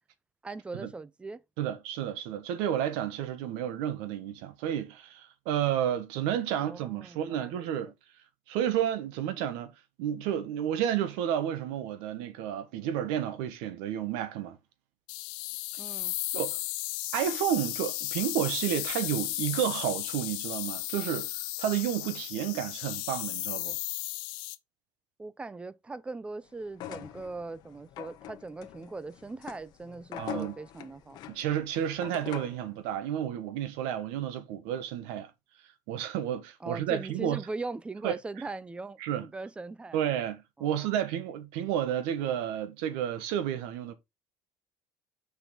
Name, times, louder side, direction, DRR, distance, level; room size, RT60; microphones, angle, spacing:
voice 1, 0.4-1.4 6.5-7.9 15.8-16.1 25.2-31.2 36.6-40.0 40.6-40.9, right 3 dB, 10° right, 0.5 m, -40 dB
voice 2, 1.6-7.9 8.5-9.7 10.0-14.6 16.3-16.6 17.1-23.8 30.2-30.5 31.3-35.3 35.9-37.4 38.0-38.2 39.0-39.3 39.9-43.9, right 10 dB, 85° right, 1.5 m, -31 dB
sound 1, 15.1-24.6, left 20 dB, 80° left, 0.8 m, -35 dB
sound 2, 26.7-32.7, left 11 dB, 55° left, 1.3 m, -43 dB
6.8 x 5.7 x 4.0 m
cardioid pair, 145°, 9 cm